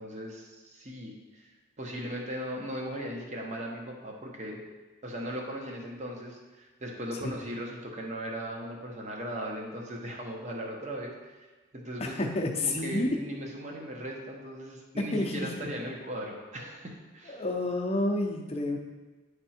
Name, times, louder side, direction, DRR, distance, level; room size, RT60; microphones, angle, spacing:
voice 1, 0.0-1.5 1.8-4.6 5.0-12.2 12.6-17.4, equal, 35° right, 0 dB, 1.0 m, -38 dB
voice 2, 12.0-13.1 15.0-15.7 17.3-18.8, left 2 dB, 30° left, 0 dB, 0.7 m, -30 dB
10.0 x 3.5 x 4.3 m, 1.3 s
head